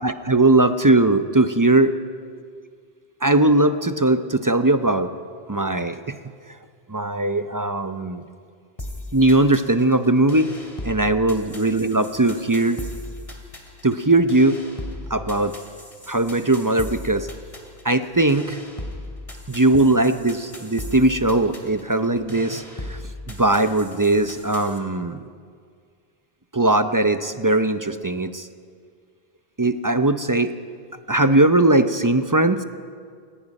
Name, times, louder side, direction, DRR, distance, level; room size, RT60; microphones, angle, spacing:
voice 1, 0.0-1.9 3.2-5.1 5.5-6.2 6.9-8.2 9.1-10.5 10.8-12.8 13.8-14.6 15.1-15.5 16.1-17.3 17.8-18.6 19.5-23.0 23.3-25.2 26.5-28.5 29.6-30.5 31.1-32.6, right 2 dB, 25° right, 9 dB, 0.6 m, -19 dB
sound 1, 8.8-24.8, left 1 dB, 35° left, 2.7 m, -38 dB
29.0 x 17.5 x 5.4 m, 2.1 s
omnidirectional pair, 1.0 m